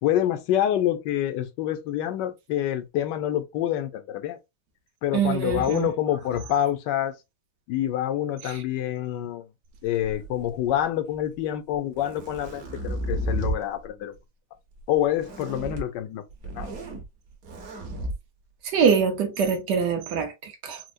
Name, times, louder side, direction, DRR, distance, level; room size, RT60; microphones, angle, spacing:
voice 1, 0.0-4.4 5.0-7.1 7.7-9.4 9.8-14.1 14.9-16.2 16.6-16.7, left 11 dB, 80° left, 1.3 m, -27 dB
voice 2, 5.1-5.9 18.7-20.8, right 6 dB, 75° right, 1.4 m, -24 dB
sound 1, 10.0-10.8 11.7-13.6 15.2-15.8 16.3-17.0 17.4-18.1, right 1 dB, 60° right, 1.4 m, -32 dB
4.5 x 2.0 x 2.5 m
omnidirectional pair, 1.9 m